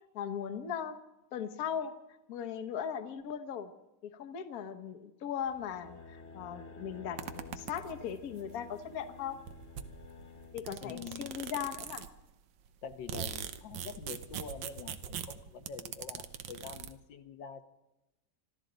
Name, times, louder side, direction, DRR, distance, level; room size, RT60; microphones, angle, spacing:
voice 1, 0.1-1.0 1.3-1.9 2.3-3.7 4.1-9.4 10.5-12.0, left 8 dB, 55° left, 6 dB, 1.3 m, -38 dB
sound 1, 5.4-10.8, left 4 dB, 40° left, 1.5 m, -51 dB
sound 2, 7.2-8.2 9.0-9.1 9.3-12.3 12.7-16.9, right 9 dB, 85° right, 1.6 m, -42 dB
voice 2, 10.8-11.3 12.8-17.6, left 6 dB, 75° left, 7 dB, 1.6 m, -45 dB
25.5 x 13.5 x 4.0 m, 0.98 s
omnidirectional pair, 2.0 m